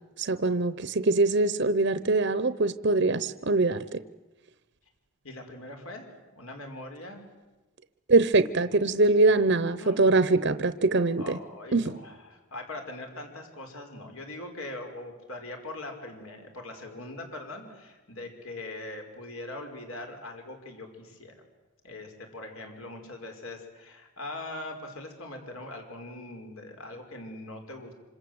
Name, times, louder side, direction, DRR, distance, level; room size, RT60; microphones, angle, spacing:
voice 1, 0.2-4.0 8.1-11.4 11.7-11.9, right 3 dB, 50° right, 13 dB, 0.8 m, -23 dB
voice 2, 5.2-6.0 6.3-7.2 9.8-10.1 11.2-21.3 21.8-27.9, left 2 dB, 70° left, 4 dB, 4.9 m, -41 dB
26.5 x 26.0 x 7.9 m, 1.1 s
head